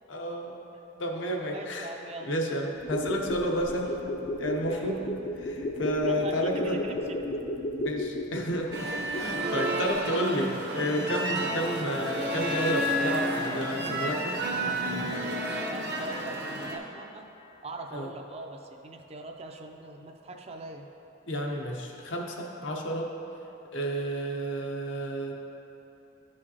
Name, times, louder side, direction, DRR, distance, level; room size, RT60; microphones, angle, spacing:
voice 1, 0.1-0.6 1.0-1.9 2.2-3.9 4.3-5.0 5.4-6.8 7.8-14.4 17.9-18.1 21.2-23.1 23.7-25.4, equal, 80° left, 1 dB, 0.8 m, -31 dB
voice 2, 1.4-2.4 4.7-5.0 6.0-7.2 15.7-17.3 17.6-20.9, right 2 dB, 35° right, 4 dB, 0.4 m, -42 dB
sound 1, 2.7-9.6 9.9-10.0, left 1 dB, 40° left, 0.4 m, -34 dB
sound 2, 8.7-16.8, right 1 dB, 55° right, 0.8 m, -30 dB
11.5 x 4.9 x 2.8 m, 3.0 s
head